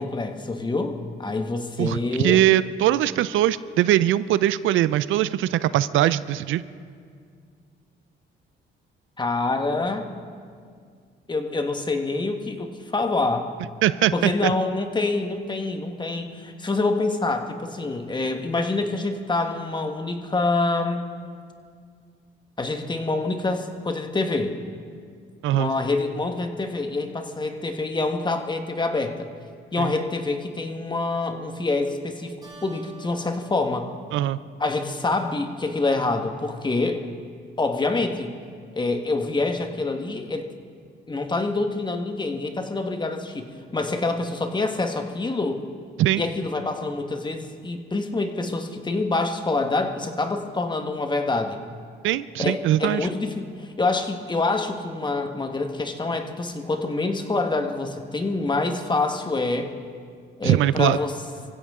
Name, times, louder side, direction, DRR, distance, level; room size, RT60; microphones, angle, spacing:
voice 1, 0.0-2.4 9.2-10.1 11.3-13.5 14.1-21.0 22.6-24.5 25.5-29.3 29.7-32.3 32.6-33.9 34.6-37.0 37.6-38.3 38.7-40.5 41.1-45.6 46.2-51.6 52.4-59.7 60.4-61.1, left 3 dB, 20° left, 5 dB, 1.4 m, -26 dB
voice 2, 1.8-6.6 13.8-14.5 25.4-25.7 29.8-29.9 34.1-34.4 46.0-46.2 52.0-53.1 60.4-61.0, right 13 dB, 80° right, 16 dB, 0.5 m, -21 dB
Keyboard (musical), 32.4-35.3, right 1 dB, 20° right, 5.3 m, -49 dB
25.0 x 15.5 x 3.7 m, 2.1 s
cardioid pair, 90°, 20 cm